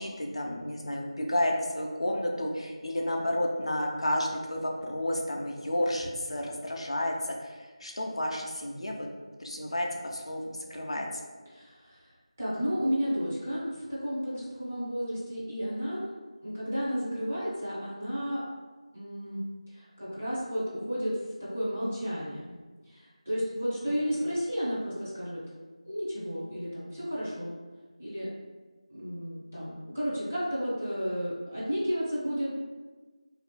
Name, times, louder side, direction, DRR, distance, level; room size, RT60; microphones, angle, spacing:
voice 1, 0.0-9.1 9.4-11.1 23.8-24.2, left 1 dB, 55° left, 1 dB, 0.4 m, -31 dB
voice 2, 11.5-12.1 12.4-16.0 16.4-18.4 18.9-19.4 19.7-22.6 22.9-25.4 25.8-27.5 28.0-28.3 28.9-32.5, equal, 20° right, -9 dB, 0.4 m, -32 dB
2.6 x 2.4 x 2.2 m, 1.3 s
figure-of-eight pair, 180°, 4 cm